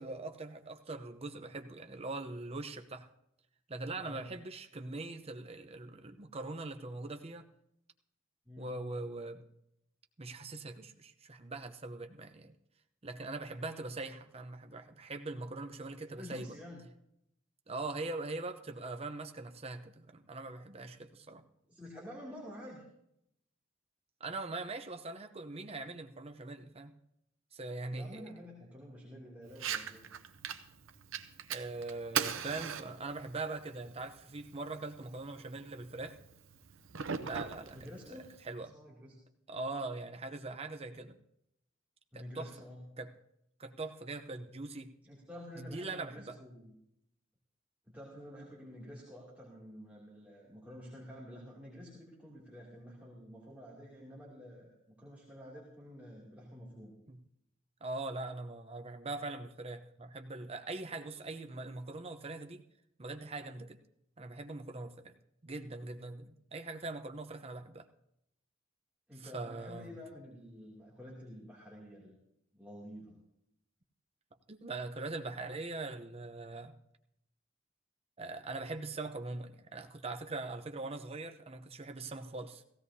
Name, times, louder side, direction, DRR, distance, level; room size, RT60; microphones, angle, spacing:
voice 1, 0.0-3.1 3.7-7.4 8.6-9.4 10.2-12.5 13.0-16.6 17.7-21.4 24.2-26.9 27.5-28.3 31.5-36.2 37.2-37.8 38.1-38.7 39.5-41.2 42.1-42.5 43.0-43.1 43.6-44.9 45.5-46.4 57.1-57.2 57.8-62.6 63.0-63.8 64.2-65.1 65.4-67.9 69.1-70.0 74.5-76.7 78.2-82.6, right 3 dB, 30° right, 6 dB, 0.8 m, -42 dB
voice 2, 16.1-16.8 21.7-22.9 27.9-30.0 37.7-38.3 38.7-39.1 42.1-42.8 45.0-46.7 47.9-57.0 69.1-72.2 72.5-73.2, equal, 10° right, -5 dB, 2.7 m, -49 dB
Fire, 29.5-38.5, right 7 dB, 80° right, 0.7 m, -41 dB
16.5 x 16.0 x 2.8 m, 0.77 s
head